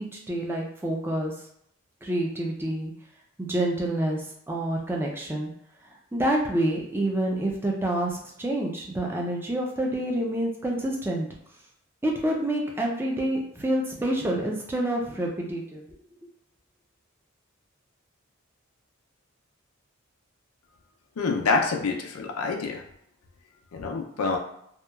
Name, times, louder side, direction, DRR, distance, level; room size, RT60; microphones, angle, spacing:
voice 1, 0.0-1.3 2.0-2.9 3.4-5.5 5.8-11.3 12.0-15.9, right 1 dB, 10° right, 0 dB, 0.4 m, -28 dB
voice 2, 21.2-22.8 23.7-24.4, left 4 dB, 85° left, 2 dB, 0.4 m, -26 dB
2.8 x 2.3 x 2.2 m, 0.72 s
head